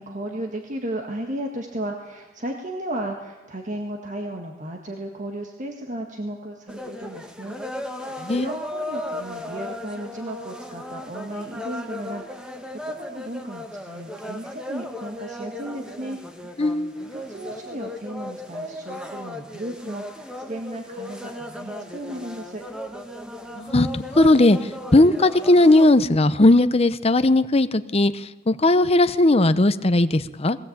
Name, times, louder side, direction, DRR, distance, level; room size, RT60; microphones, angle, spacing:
voice 1, 0.0-7.6 7.9-16.2 17.1-22.6, right 1 dB, 40° right, 2 dB, 1.8 m, -34 dB
sound 1, 6.7-25.9, left 1 dB, 5° right, 1.6 m, -36 dB
voice 2, 16.6-17.1 23.6-24.6 24.9-28.1 28.5-30.6, left 2 dB, 30° left, 12 dB, 0.8 m, -17 dB
21.0 x 16.5 x 8.7 m, 1.1 s
head